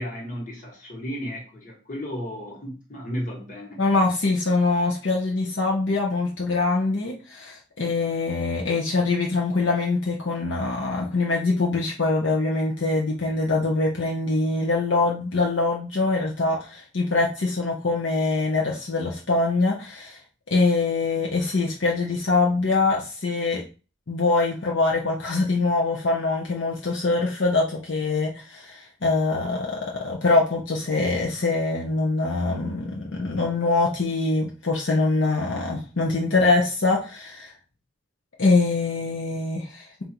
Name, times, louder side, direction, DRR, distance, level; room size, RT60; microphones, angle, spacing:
voice 1, 0.0-3.8, equal, 40° left, -1 dB, 1.5 m, -34 dB
voice 2, 3.8-20.2 20.5-23.6 24.1-37.5 38.4-40.0, left 3 dB, 70° left, -2 dB, 0.8 m, -24 dB
3.8 x 2.7 x 4.4 m, 0.34 s
head